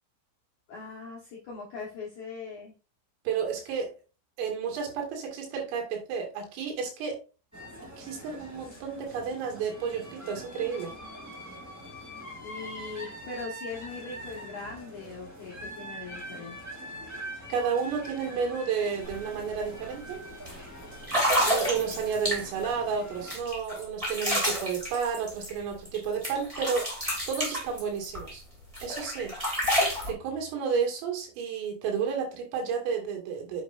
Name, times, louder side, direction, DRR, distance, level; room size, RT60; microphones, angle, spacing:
voice 1, 0.7-2.7 12.4-16.6, left 4 dB, 60° left, -5 dB, 2.0 m, -40 dB
voice 2, 3.3-3.9 4.4-7.2 8.0-10.9 17.5-20.2 21.4-28.4 28.8-29.3 30.1-33.6, right 6 dB, 80° right, 1 dB, 4.8 m, -31 dB
sound 1, 7.5-23.4, equal, 5° right, 1.4 m, -43 dB
sound 2, 19.0-19.2 19.5-19.8 20.5-20.6 21.0-22.7 23.3-26.0 26.2-28.3 28.7-30.1, equal, 25° right, 0.7 m, -29 dB
8.7 x 7.7 x 2.6 m, 0.33 s
omnidirectional pair, 5.9 m